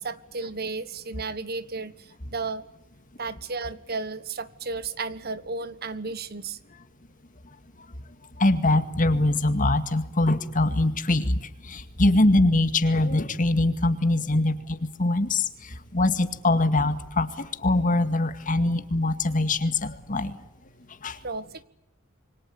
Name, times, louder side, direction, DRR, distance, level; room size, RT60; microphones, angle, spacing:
voice 1, 0.0-2.6 3.2-6.6 21.2-21.6, right 4 dB, 50° right, 15 dB, 1.4 m, -33 dB
voice 2, 8.4-11.3 11.6-20.4 21.0-21.2, left 2 dB, 40° left, 10 dB, 2.1 m, -23 dB
27.5 x 25.0 x 8.5 m, 0.77 s
head